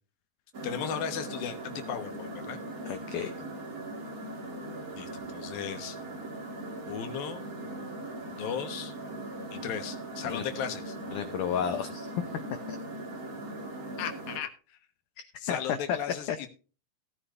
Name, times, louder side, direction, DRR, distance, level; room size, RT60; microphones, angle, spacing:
sound 1, 0.5-14.4, right 1 dB, 45° right, 1.2 m, -40 dB
voice 1, 0.6-2.6 4.9-6.0 6.9-7.4 8.3-8.9 9.5-11.0 14.0-14.8 15.4-16.5, left 8 dB, 65° left, 7 dB, 2.9 m, -36 dB
voice 2, 2.8-3.3 10.2-10.4 11.1-12.8 15.2-16.0 16.3-16.4, left 8 dB, 85° left, 9 dB, 1.7 m, -32 dB
17.0 x 9.9 x 2.6 m, 0.35 s
omnidirectional pair, 4.8 m